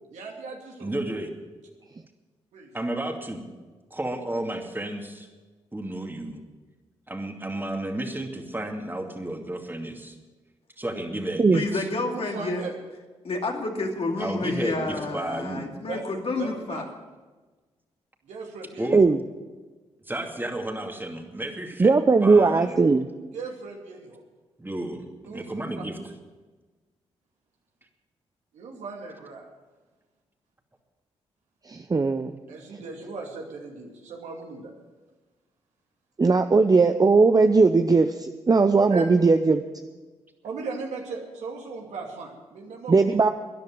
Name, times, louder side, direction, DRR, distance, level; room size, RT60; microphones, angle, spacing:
voice 1, 0.1-0.9 2.5-2.7 11.9-12.7 14.5-15.0 15.9-16.0 16.4-16.8 18.2-18.9 22.5-22.6 23.3-24.2 25.2-25.6 28.5-29.5 32.5-34.7 38.9-39.0 40.4-43.0, right 4 dB, 80° right, 1 dB, 2.6 m, -37 dB
voice 2, 0.8-1.3 2.7-3.4 3.9-5.3 5.7-6.4 7.1-10.2 10.8-11.9 14.2-15.7 18.8-19.0 20.1-21.9 22.2-22.8 24.6-26.0, right 1 dB, 15° right, 3 dB, 2.5 m, -32 dB
voice 3, 11.5-12.6 13.2-16.8, left 3 dB, 55° left, 2 dB, 2.6 m, -29 dB
voice 4, 21.8-23.1 31.7-32.3 36.2-39.6 42.9-43.3, right 4 dB, 30° right, 7 dB, 0.8 m, -19 dB
13.5 x 10.5 x 7.7 m, 1.3 s
supercardioid pair, 45°, 12 cm